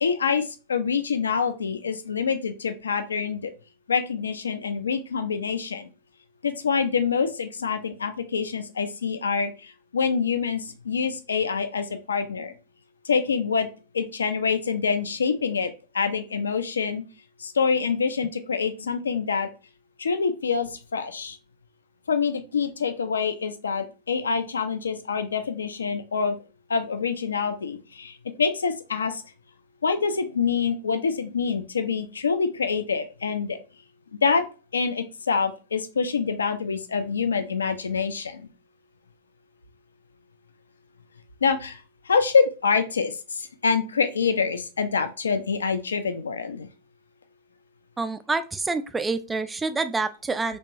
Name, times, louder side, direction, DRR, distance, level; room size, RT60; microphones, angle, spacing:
voice 1, 0.0-3.5 3.9-5.9 6.4-12.5 13.0-13.7 13.9-17.0 17.4-19.5 20.0-21.4 22.1-26.4 26.7-29.2 29.8-33.6 34.1-34.4 34.7-38.5 41.4-46.7, left 5 dB, 70° left, 9 dB, 0.3 m, -26 dB
voice 2, 48.0-50.6, right 3 dB, 10° right, 11 dB, 0.3 m, -27 dB
3.4 x 2.9 x 2.6 m, 0.33 s
figure-of-eight pair, 90°, 0 cm